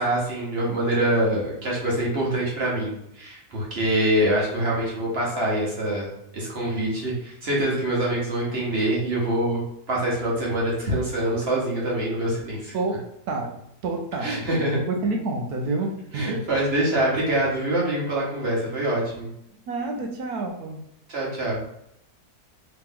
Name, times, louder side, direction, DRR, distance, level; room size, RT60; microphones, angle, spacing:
voice 1, 0.0-9.6 9.9-12.7 14.2-14.8 16.1-19.3 21.1-21.6, right 1 dB, 45° right, -5 dB, 1.1 m, -25 dB
voice 2, 12.7-16.3 19.7-20.8, right 3 dB, 75° right, 3 dB, 1.1 m, -29 dB
3.3 x 2.9 x 3.6 m, 0.77 s
omnidirectional pair, 1.7 m